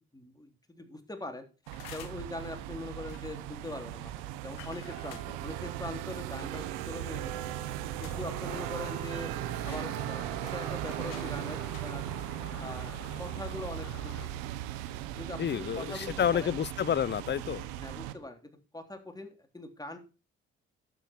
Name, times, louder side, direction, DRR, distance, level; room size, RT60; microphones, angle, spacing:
voice 1, 0.0-1.4 1.9-7.5 8.0-9.4 9.6-12.0 12.5-14.3 15.2-16.6 17.8-20.0, left 2 dB, 10° left, 3.5 m, -42 dB
sound 1, 1.6-2.3 3.0-3.4 4.6-5.3 6.6-7.1 7.6-7.7 8.0-8.3 8.6-9.3 9.6-11.3 11.6-11.9, left 13 dB, 75° left, 1.3 m, -51 dB
sound 2, 1.7-18.1, right 12 dB, 80° right, 1.1 m, -38 dB
sound 3, 8.0-14.3, left 9 dB, 60° left, 1.8 m, -50 dB
voice 2, 15.4-17.7, left 9 dB, 35° left, 0.6 m, -29 dB
12.0 x 8.1 x 4.6 m
hypercardioid pair, 50°, 32 cm